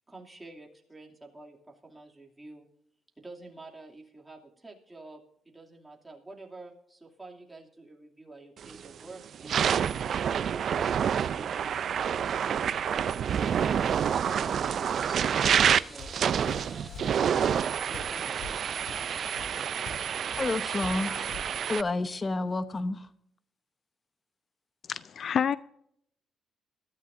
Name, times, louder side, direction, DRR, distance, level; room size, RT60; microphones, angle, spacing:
voice 1, 0.0-2.7 3.2-9.7 10.3-11.8 12.4-15.2 15.9-18.3, right 2 dB, 15° right, 2.7 m, -49 dB
sound 1, 8.6-8.9 9.3-21.8, right 8 dB, 60° right, 0.5 m, -28 dB
sound 2, 13.3-19.7, left 1 dB, 10° left, 2.2 m, -50 dB
Walk footsteps, 15.4-15.7 16.0-20.1 20.3-20.6 20.8-21.6, left 3 dB, 85° left, 2.6 m, -44 dB
voice 2, 20.4-21.3 21.7-23.1, left 2 dB, 30° left, 0.9 m, -30 dB
voice 3, 24.9-25.6, left 8 dB, 55° left, 0.4 m, -28 dB
21.0 x 13.0 x 2.7 m
cardioid pair, 90°, 0 cm